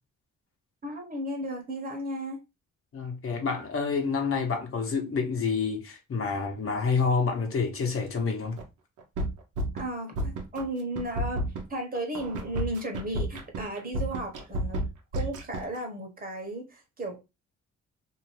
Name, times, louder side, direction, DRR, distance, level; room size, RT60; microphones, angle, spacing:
voice 1, 0.8-2.4 9.7-11.4 11.7-14.8 15.1-17.2, right 1 dB, 30° right, 1.1 m, -34 dB
voice 2, 2.9-8.6, left 5 dB, 45° left, 1.1 m, -28 dB
sound 1, 8.6-8.7 9.0-9.8 10.2-10.6 11.0-15.8, right 1 dB, 80° right, 0.8 m, -31 dB
2.7 x 2.5 x 3.1 m
cardioid pair, 90°, 30 cm